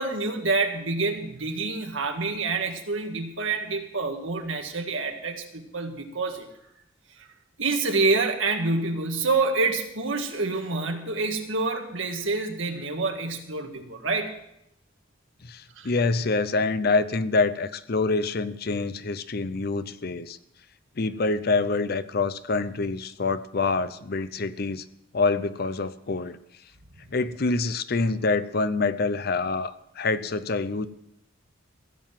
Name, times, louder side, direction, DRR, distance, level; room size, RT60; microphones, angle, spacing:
voice 1, 0.0-6.4 7.2-7.3 7.6-14.3 15.8-15.9, right 3 dB, 75° right, 4 dB, 1.8 m, -27 dB
voice 2, 15.4-20.4 21.0-24.8 25.1-26.4 27.1-30.9, left 3 dB, 50° left, 14 dB, 0.6 m, -26 dB
16.0 x 7.9 x 7.4 m, 0.80 s
head